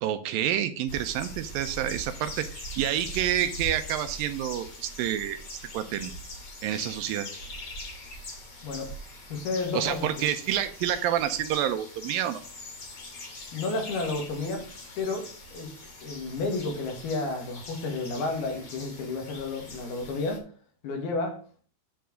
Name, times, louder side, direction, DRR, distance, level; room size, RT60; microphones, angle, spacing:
voice 1, 0.0-5.4 5.7-6.1 6.6-7.3 9.7-12.4, right 11 dB, 80° right, 2.1 m, -28 dB
sound 1, 0.9-20.4, left 1 dB, 35° left, 3.3 m, -42 dB
voice 2, 8.6-8.9 9.3-10.3 13.5-14.7 15.0-20.5 20.8-21.4, left 3 dB, 70° left, 3.8 m, -32 dB
9.0 x 4.7 x 6.2 m
omnidirectional pair, 4.6 m